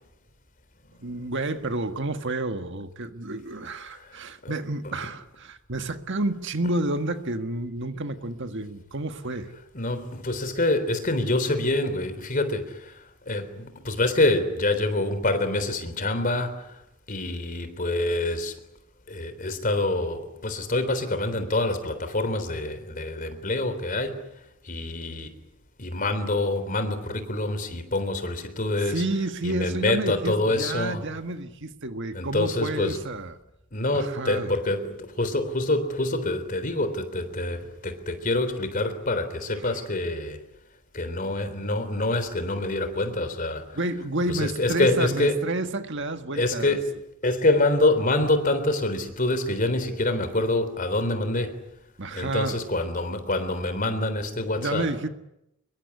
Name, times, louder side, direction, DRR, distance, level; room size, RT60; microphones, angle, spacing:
voice 1, 1.0-9.5 28.9-33.3 33.9-34.5 43.7-46.8 52.0-52.6 54.6-55.1, right 2 dB, 55° right, 1.7 m, -30 dB
voice 2, 9.7-12.8 13.3-16.7 17.1-18.5 19.1-24.2 24.7-25.3 25.8-29.0 29.4-31.0 32.1-33.0 33.7-40.4 40.9-43.6 44.3-45.4 46.3-46.9 47.2-51.6 52.1-54.9, left 2 dB, 40° left, 3.6 m, -26 dB
25.5 x 22.5 x 9.7 m
head